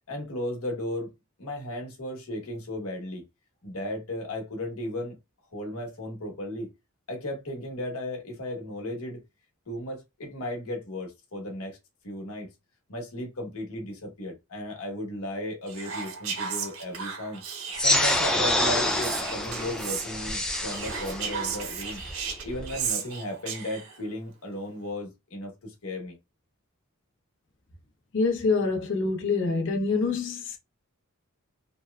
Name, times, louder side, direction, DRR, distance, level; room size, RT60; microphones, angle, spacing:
voice 1, 0.1-1.1 1.4-3.2 3.6-5.2 5.5-6.7 7.1-9.2 9.7-11.8 12.0-12.5 12.9-17.4 17.8-22.0 22.4-26.2, left 1 dB, 80° left, 1.1 m, -35 dB
Whispering, 15.7-18.2 18.9-20.1 20.7-24.0, right 6 dB, 65° right, 0.6 m, -35 dB
sound 1, 17.7-22.7, left 1 dB, 5° left, 0.3 m, -27 dB
voice 2, 28.1-30.6, left 4 dB, 55° left, 0.6 m, -26 dB
2.9 x 2.1 x 2.2 m
head